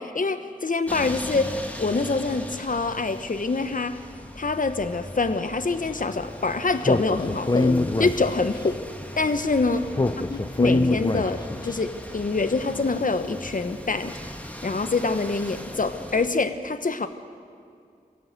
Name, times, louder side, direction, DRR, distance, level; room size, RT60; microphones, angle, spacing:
voice 1, 0.0-4.0 4.4-8.8 9.2-9.9 10.2-14.1 14.6-17.1, left 3 dB, 55° left, 10 dB, 1.2 m, -25 dB
sound 1, 0.9-16.3, equal, 10° left, 2.1 m, -39 dB
Speech, 6.8-8.7 9.9-11.7, left 2 dB, 25° left, 0.7 m, -24 dB
25.0 x 16.5 x 7.9 m, 2.4 s
wide cardioid pair, 65°, 16 cm